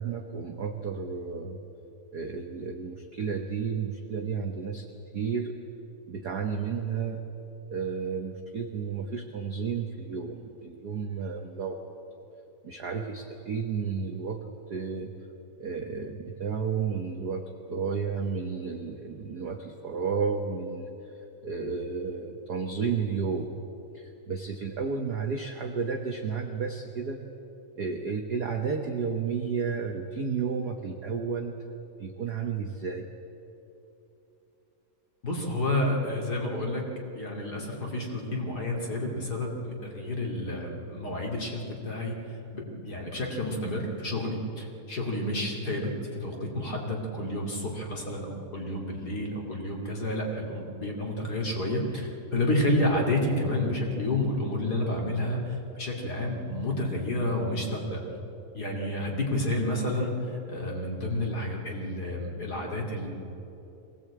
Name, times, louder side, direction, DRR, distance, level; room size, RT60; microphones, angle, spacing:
voice 1, 0.0-1.6 2.1-4.9 5.1-5.5 6.1-7.2 7.7-11.9 12.6-15.1 15.6-20.9 21.4-23.6 23.9-27.2 27.7-31.6 32.0-33.1, right 5 dB, 60° right, 3 dB, 1.0 m, -32 dB
voice 2, 35.2-36.8 37.1-42.2 42.5-58.0 58.5-63.1, left 1 dB, 35° left, 0 dB, 3.1 m, -30 dB
23.0 x 17.5 x 8.7 m, 3.0 s
omnidirectional pair, 3.4 m